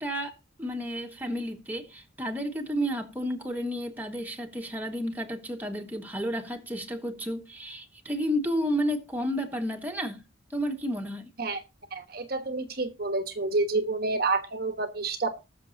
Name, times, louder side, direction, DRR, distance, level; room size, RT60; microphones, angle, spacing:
voice 1, 0.0-10.2 10.5-11.3, equal, 10° right, 1.5 m, -31 dB
voice 2, 11.9-15.3, right 3 dB, 50° right, 1.2 m, -29 dB
20.0 x 6.9 x 2.7 m
head